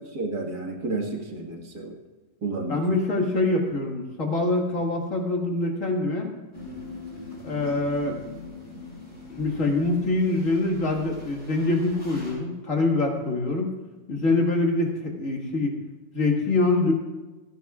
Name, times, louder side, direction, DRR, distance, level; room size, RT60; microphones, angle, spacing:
voice 1, 0.0-2.0 2.4-2.9, right 3 dB, 65° right, 1 dB, 2.3 m, -31 dB
voice 2, 2.7-6.3 7.4-8.2 9.3-13.8 14.1-15.7 16.1-16.9, left 2 dB, 50° left, 0 dB, 2.2 m, -24 dB
sound 1, 6.5-12.3, left 3 dB, 20° left, 5.5 m, -42 dB
28.0 x 10.0 x 2.4 m, 1.2 s
omnidirectional pair, 1.8 m